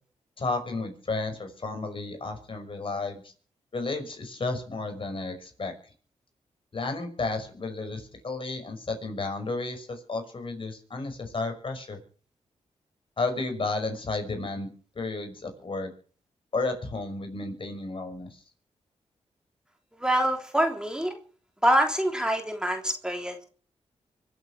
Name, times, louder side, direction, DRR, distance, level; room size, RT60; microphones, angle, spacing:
voice 1, 0.4-3.2 3.7-5.7 6.7-12.0 13.2-14.7 15.0-15.9 16.5-18.3, left 3 dB, 45° left, 6 dB, 5.6 m, -32 dB
voice 2, 20.0-21.1 21.6-23.4, right 1 dB, 5° right, 3 dB, 3.3 m, -25 dB
24.5 x 8.3 x 6.1 m, 0.42 s
cardioid pair, 70°, 12 cm